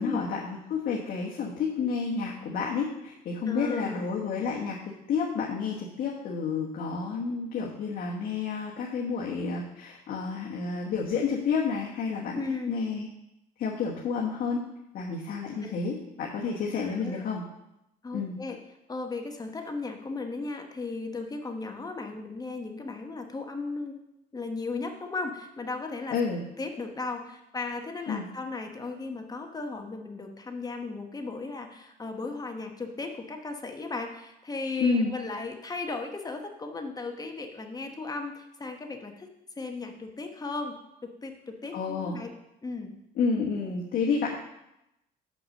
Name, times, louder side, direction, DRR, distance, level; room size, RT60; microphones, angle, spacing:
voice 1, 0.0-4.8 5.1-12.4 12.7-13.1 13.6-14.6 14.9-17.4 18.1-18.4 26.1-26.4 28.1-28.2 34.8-35.1 41.7-42.2 43.2-44.3, left 5 dB, 60° left, -2 dB, 1.3 m, -30 dB
voice 2, 3.4-4.1 12.3-12.7 15.6-15.7 16.7-17.3 18.0-18.6 18.9-24.0 24.3-26.2 26.6-39.3 39.6-40.8 41.0-42.3 42.6-42.9, left 3 dB, 20° left, 4 dB, 1.1 m, -36 dB
6.6 x 6.0 x 6.4 m, 0.87 s
cardioid pair, 110°, 17 cm